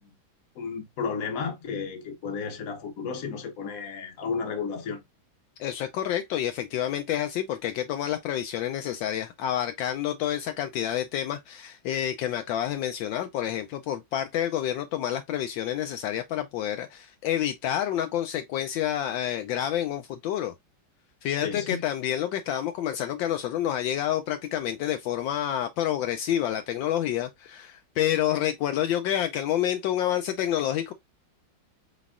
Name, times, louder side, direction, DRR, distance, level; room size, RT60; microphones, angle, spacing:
voice 1, 0.6-5.0 21.4-21.8, left 5 dB, 50° left, 1.3 m, -33 dB
voice 2, 5.6-20.5 21.2-30.9, left 11 dB, 75° left, 1.3 m, -28 dB
4.5 x 3.9 x 2.4 m
omnidirectional pair, 2.1 m